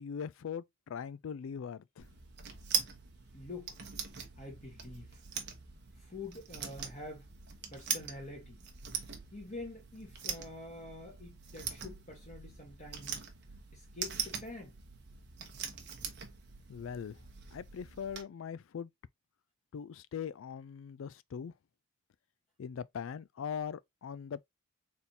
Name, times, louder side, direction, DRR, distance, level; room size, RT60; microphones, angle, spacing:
voice 1, 0.0-2.1 16.7-17.2 17.5-18.9 19.7-21.5 22.6-24.4, left 7 dB, 65° left, 0.3 m, -41 dB
sound 1, 2.0-18.2, right 8 dB, 50° right, 0.9 m, -42 dB
voice 2, 3.3-3.8 4.4-5.2 6.0-7.3 7.7-8.6 9.3-13.2 13.7-14.7, left 2 dB, 35° left, 1.3 m, -46 dB
4.2 x 3.6 x 2.7 m
head